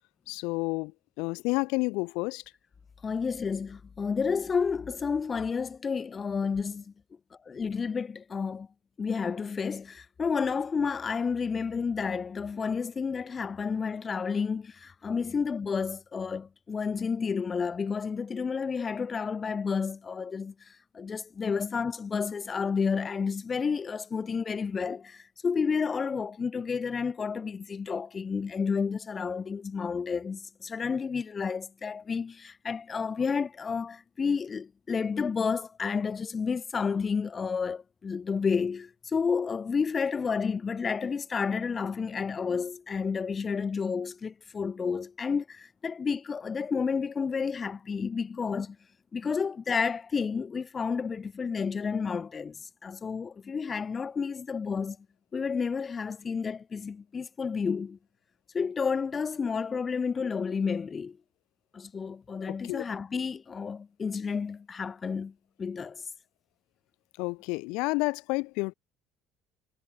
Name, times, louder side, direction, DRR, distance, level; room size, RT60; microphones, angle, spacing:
voice 1, 0.3-0.9 1.2-2.4 62.5-62.8 67.2-68.7, left 27 dB, 80° left, 1.5 m, -30 dB
voice 2, 3.0-6.9 7.4-8.7 9.0-48.8 49.1-55.0 55.3-58.0 58.5-61.2 61.7-66.0, left 5 dB, 25° left, 1.3 m, -31 dB
cardioid pair, 125°, 0 cm